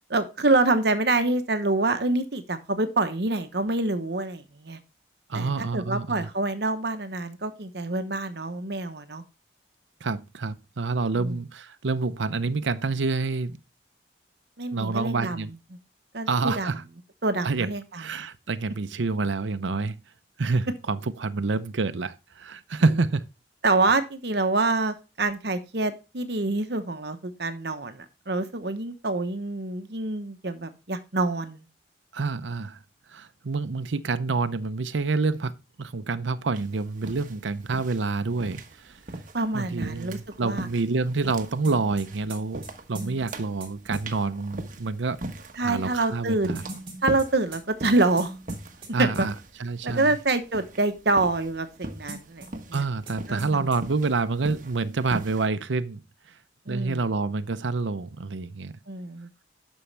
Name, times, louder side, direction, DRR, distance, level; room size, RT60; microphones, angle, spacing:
voice 1, 0.1-4.8 5.3-9.2 11.2-11.4 14.6-15.5 16.1-16.7 17.2-18.3 22.8-22.9 23.6-31.7 39.3-40.7 45.6-46.6 47.0-48.3 49.0-49.3 49.8-52.8 53.3-53.7 56.7-57.0 58.9-59.4, right 2 dB, 60° right, 1.0 m, -26 dB
voice 2, 5.3-6.3 10.0-13.6 14.7-15.5 16.3-16.8 17.4-17.7 17.9-20.0 20.4-23.3 32.1-32.8 33.1-39.0 39.5-45.2 45.6-46.6 48.9-49.3 49.6-50.1 52.7-56.0 56.7-58.7, right 3 dB, 80° right, 0.7 m, -27 dB
sound 1, 36.5-55.5, right 1 dB, 45° right, 1.3 m, -40 dB
sound 2, 41.6-44.0 46.5-48.9 49.1-49.2 52.1-52.8 53.1-53.2 53.4-53.8, right 2 dB, 30° right, 3.6 m, -40 dB
11.5 x 6.3 x 3.3 m
head